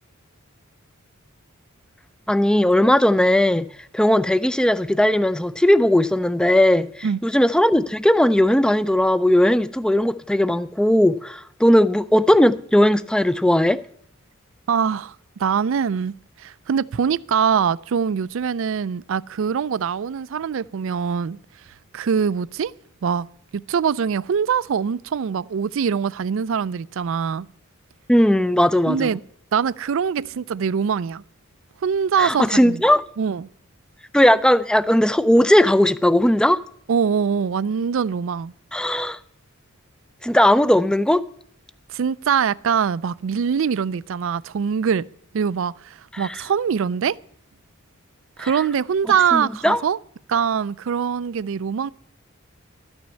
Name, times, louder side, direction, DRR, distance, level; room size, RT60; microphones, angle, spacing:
voice 1, 2.3-3.7 3.9-13.8 28.1-29.1 32.2-33.0 34.1-36.6 38.7-39.2 40.2-41.2 46.1-46.3 48.4-48.5 49.3-49.8, left 1 dB, 5° left, 0.4 m, -17 dB
voice 2, 14.7-15.1 15.4-21.4 21.9-22.7 23.0-23.3 23.7-27.5 28.9-29.2 29.5-31.2 31.8-32.8 33.2-33.5 36.9-38.5 41.9-45.1 45.3-47.2 48.4-50.0 50.3-51.9, right 7 dB, 65° right, 0.4 m, -23 dB
12.5 x 6.2 x 8.2 m
head